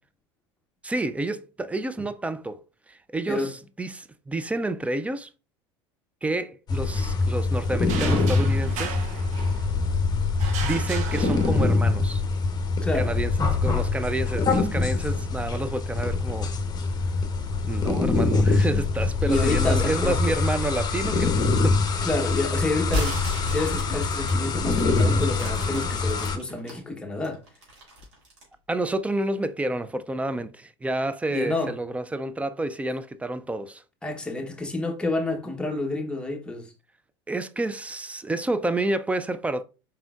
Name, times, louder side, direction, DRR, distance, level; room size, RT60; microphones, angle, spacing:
voice 1, 0.8-5.3 6.2-9.0 10.6-12.2 12.9-13.3 13.6-16.5 17.6-21.8 28.7-33.8 37.3-39.6, right 2 dB, 10° right, 0.3 m, -29 dB
sound 1, 6.7-26.4, left 3 dB, 30° left, 0.9 m, -24 dB
sound 2, 7.9-9.9 10.4-12.0, right 6 dB, 55° right, 0.8 m, -35 dB
voice 2, 12.8-13.2 19.3-20.4 22.0-23.2 23.5-27.4 31.3-31.8 34.0-36.7, left 2 dB, 5° left, 1.0 m, -29 dB
sound 3, 22.9-26.8 27.2-28.5, left 1 dB, 85° right, 2.2 m, -34 dB
4.3 x 3.6 x 2.4 m
hypercardioid pair, 90°, 15 cm